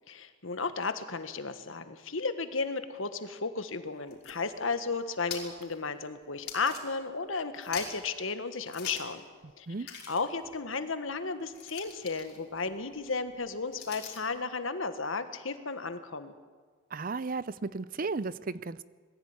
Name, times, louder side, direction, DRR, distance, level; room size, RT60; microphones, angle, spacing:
voice 1, 0.1-9.2 9.6-16.3, left 4 dB, 75° left, 10 dB, 1.5 m, -34 dB
sound 1, 3.9-7.3 7.5-8.1 8.7-9.2 9.5-9.6 9.8-14.4, left 6 dB, 55° left, 4.9 m, -45 dB
voice 2, 16.9-18.8, right 4 dB, 45° right, 18 dB, 0.6 m, -34 dB
21.5 x 15.5 x 9.6 m, 1.5 s
head